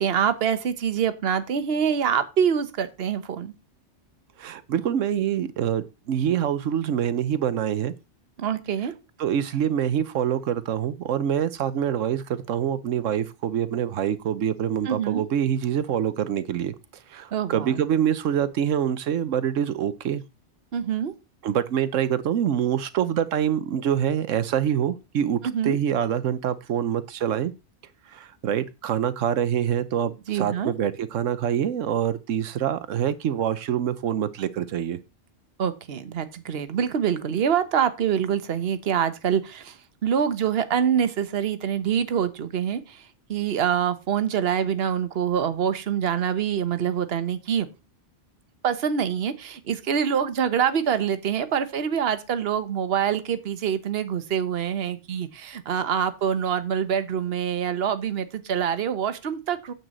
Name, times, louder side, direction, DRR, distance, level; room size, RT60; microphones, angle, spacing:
voice 1, 0.0-3.5 8.4-8.9 14.8-15.2 17.3-17.8 20.7-21.1 25.4-25.8 30.3-30.7 35.6-39.8 40.0-43.0 43.3-47.7 48.6-59.7, right 8 dB, 55° right, 1.1 m, -25 dB
voice 2, 4.4-7.9 9.2-20.2 21.4-27.5 28.1-35.0, right 9 dB, 85° right, 1.1 m, -25 dB
9.4 x 4.4 x 7.5 m
omnidirectional pair, 1.3 m